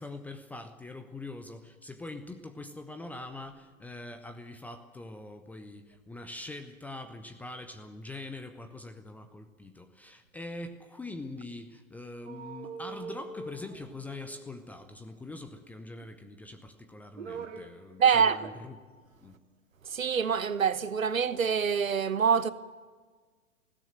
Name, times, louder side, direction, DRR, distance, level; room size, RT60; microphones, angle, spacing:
voice 1, 0.0-18.8 19.2-19.4, left 2 dB, 5° left, 0.5 m, -43 dB
sound 1, 12.2-14.8 16.0-16.6 16.9-17.8 18.1-18.7 19.0-19.1, right 5 dB, 60° right, 2.4 m, -43 dB
voice 2, 18.0-18.4 19.8-22.5, right 6 dB, 75° right, 1.1 m, -25 dB
19.5 x 16.0 x 9.1 m
figure-of-eight pair, 115°, 41 cm